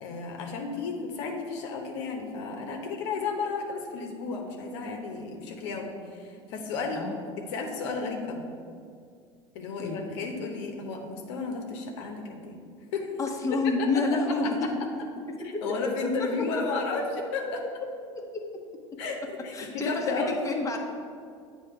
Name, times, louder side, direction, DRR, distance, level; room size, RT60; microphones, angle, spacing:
voice 1, 0.0-7.0 7.4-8.5 9.5-12.6 12.9-13.1 13.8-14.5 15.4-17.0 17.3-17.6 19.0-20.4, left 4 dB, 70° left, 2 dB, 0.9 m, -33 dB
voice 2, 13.2-14.7 15.2-16.5 16.7-16.8 17.5-17.6 18.2-18.4 19.5-20.8, left 3 dB, 20° left, 1 dB, 0.9 m, -29 dB
8.4 x 2.9 x 5.6 m, 2.3 s
hypercardioid pair, 80°, 15 cm